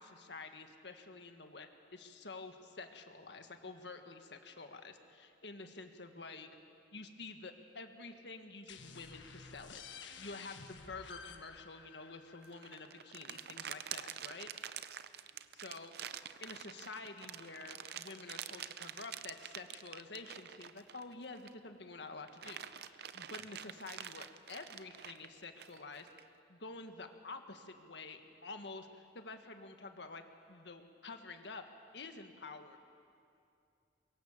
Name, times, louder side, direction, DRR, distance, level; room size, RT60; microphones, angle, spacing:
voice 1, 0.0-6.5 6.9-14.5 15.5-15.9 16.4-30.2 30.5-31.6 31.9-32.8, left 3 dB, 70° left, 6 dB, 1.7 m, -49 dB
sound 1, 8.7-14.1, left 5 dB, 90° left, 1.5 m, -53 dB
sound 2, 12.4-21.7 22.1-26.2, right 9 dB, 60° right, 0.6 m, -47 dB
24.5 x 23.0 x 7.3 m, 2.5 s
head